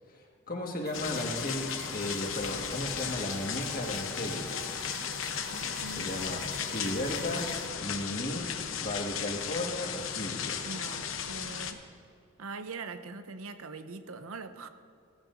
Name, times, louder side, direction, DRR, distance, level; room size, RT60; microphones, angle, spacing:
voice 1, 0.1-4.7 5.9-10.7, left 1 dB, 45° left, 1 dB, 1.7 m, -35 dB
sound 1, 0.9-11.7, left 7 dB, 70° left, 0.8 m, -36 dB
sound 2, 0.9-7.7, right 2 dB, 50° right, 1.2 m, -46 dB
voice 2, 10.6-11.8 12.4-14.7, right 4 dB, 85° right, 10 dB, 0.7 m, -42 dB
17.0 x 14.5 x 2.6 m, 2.4 s
head